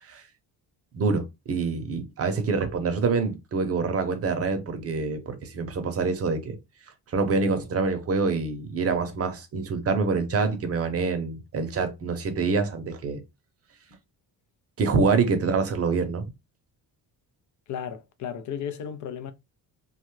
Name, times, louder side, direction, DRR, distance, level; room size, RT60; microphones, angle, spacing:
voice 1, 0.9-6.6 7.1-13.2 14.8-16.2, right 4 dB, 35° right, 0.7 m, -26 dB
voice 2, 17.7-19.3, left 8 dB, 50° left, 0.5 m, -34 dB
2.6 x 2.3 x 3.0 m
cardioid pair, 120°, 39 cm